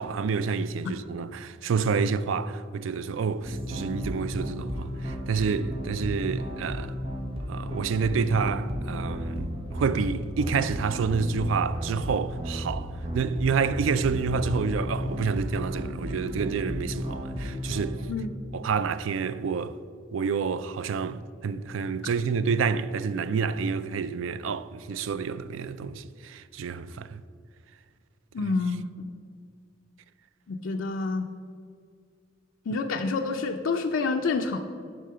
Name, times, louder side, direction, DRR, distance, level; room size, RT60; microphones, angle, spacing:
voice 1, 0.0-6.9 7.5-18.1 18.5-19.8 20.1-27.2 28.4-28.5, right 5 dB, 85° right, 0.4 m, -28 dB
sound 1, 3.4-18.1, equal, 30° right, 1.2 m, -34 dB
voice 2, 28.3-28.9 30.5-31.3 32.7-34.6, left 4 dB, 90° left, 0.5 m, -28 dB
11.0 x 3.7 x 6.7 m
head